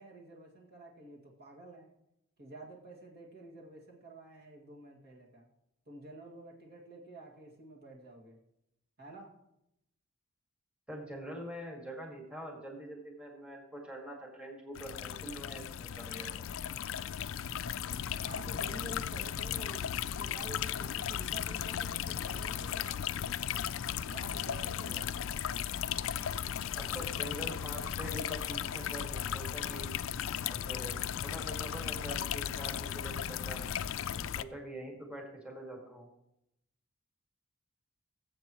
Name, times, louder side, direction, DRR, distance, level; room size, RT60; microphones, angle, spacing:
voice 1, 0.0-1.9 2.4-5.5 5.9-8.4 9.0-9.3 18.2-23.1 24.1-25.3, right 2 dB, 50° right, -2 dB, 2.1 m, -50 dB
voice 2, 10.9-16.3 26.7-29.9 30.5-33.7 34.1-36.1, right 1 dB, 5° right, -1 dB, 1.9 m, -44 dB
sound 1, 14.8-34.4, left 9 dB, 70° left, 0.4 m, -36 dB
20.5 x 7.7 x 3.0 m, 0.84 s
head